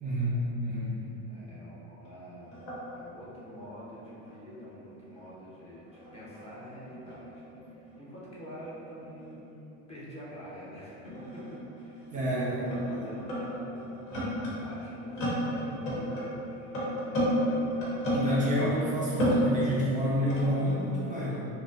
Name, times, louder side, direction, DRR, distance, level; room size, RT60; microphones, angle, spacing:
voice 1, 0.0-1.0 12.1-13.1 18.1-21.5, equal, 20° right, -7 dB, 0.8 m, -29 dB
voice 2, 0.8-11.4 11.7-17.9, equal, 15° left, -8 dB, 0.8 m, -47 dB
sound 1, 2.1-2.2 2.4-5.3 5.6-9.4 10.2-10.4 11.0-18.9 19.1-20.9, equal, 70° left, 1.3 m, -33 dB
3.8 x 2.3 x 2.5 m, 2.9 s
supercardioid pair, 105°, 38 cm